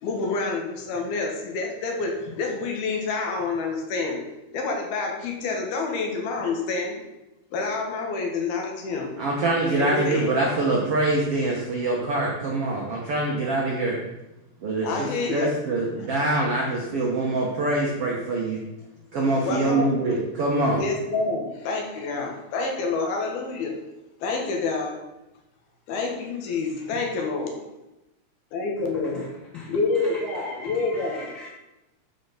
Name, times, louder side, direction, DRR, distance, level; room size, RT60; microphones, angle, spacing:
voice 1, 0.0-4.2 4.5-7.0 7.5-9.1 9.7-10.3 14.8-15.6 16.0-16.1 19.2-19.9 20.7-23.7 24.2-24.9 25.9-27.6 28.5-29.2 29.5-31.3, left 3 dB, 70° left, 1 dB, 3.3 m, -28 dB
voice 2, 9.2-14.0 14.6-18.6 19.1-20.8, right 2 dB, 65° right, -2 dB, 1.4 m, -24 dB
voice 3, 29.5-31.5, equal, 45° right, -5 dB, 1.0 m, -42 dB
11.5 x 4.9 x 5.8 m, 0.97 s
omnidirectional pair, 4.7 m